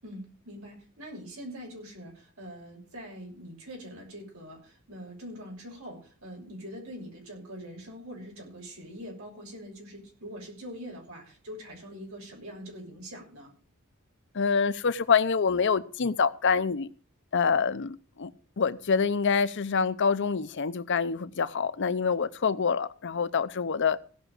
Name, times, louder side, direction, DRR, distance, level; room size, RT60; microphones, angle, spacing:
voice 1, 0.0-13.5, equal, 75° right, 6.6 m, -43 dB
voice 2, 14.3-16.9 17.3-18.3 18.6-24.0, left 5 dB, 55° left, 0.7 m, -26 dB
17.0 x 6.0 x 6.6 m
head